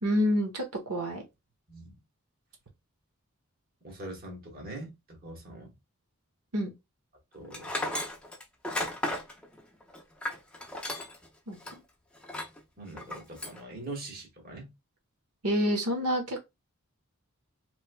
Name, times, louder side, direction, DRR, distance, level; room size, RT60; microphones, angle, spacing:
voice 1, 0.0-1.2 6.5-6.7 11.5-11.8 15.4-16.4, equal, 90° right, 0.9 m, -28 dB
voice 2, 3.8-5.7 7.3-7.8 12.8-14.7, right 2 dB, 40° right, 1.1 m, -43 dB
Tools, 7.5-11.3 11.6-11.7 12.2-12.6 13.0-13.6, left 1 dB, 5° left, 0.4 m, -34 dB
3.1 x 3.0 x 2.2 m
head